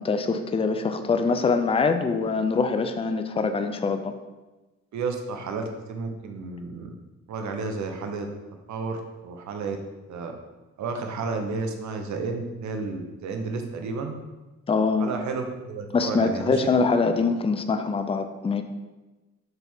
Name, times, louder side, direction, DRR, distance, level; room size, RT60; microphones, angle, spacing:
voice 1, 0.0-4.1 14.7-15.1 15.9-18.6, left 4 dB, 20° left, 8 dB, 0.5 m, -24 dB
voice 2, 4.9-6.9 7.3-8.3 8.7-9.8 10.1-10.3 10.8-14.1 15.0-16.6, right 4 dB, 70° right, 5 dB, 1.0 m, -32 dB
5.9 x 3.5 x 5.5 m, 1.1 s
cardioid pair, 90°, 30 cm